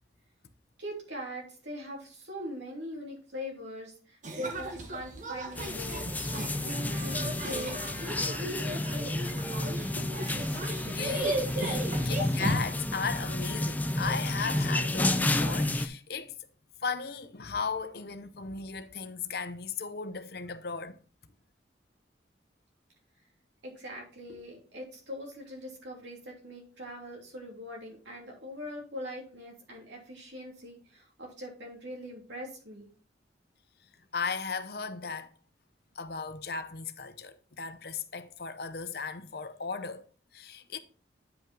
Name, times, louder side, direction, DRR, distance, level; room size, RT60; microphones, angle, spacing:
voice 1, 0.8-9.4 23.6-32.9, equal, 90° right, 3.2 m, -42 dB
sound 1, 4.2-12.6, right 2 dB, 45° right, 1.4 m, -36 dB
sound 2, 5.6-15.9, left 1 dB, 10° left, 0.5 m, -31 dB
voice 2, 10.8-16.3 16.8-21.0 34.1-35.3 35.9-40.8, left 5 dB, 60° left, 0.7 m, -36 dB
9.0 x 5.6 x 3.7 m
head